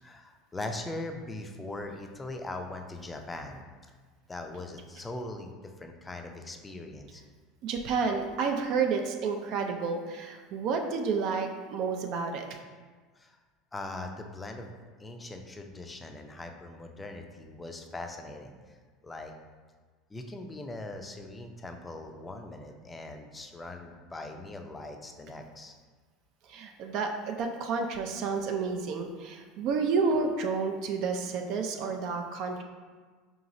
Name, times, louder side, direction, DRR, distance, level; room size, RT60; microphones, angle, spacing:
voice 1, 0.0-3.9 4.3-7.2 13.2-13.4 13.7-14.7 15.0-18.5 19.0-19.3 20.1-25.7, left 2 dB, 15° left, 4 dB, 0.4 m, -41 dB
voice 2, 7.6-12.5 26.5-32.6, right 5 dB, 55° right, 3 dB, 0.4 m, -30 dB
4.8 x 3.0 x 2.6 m, 1.4 s
supercardioid pair, 115°, 0 cm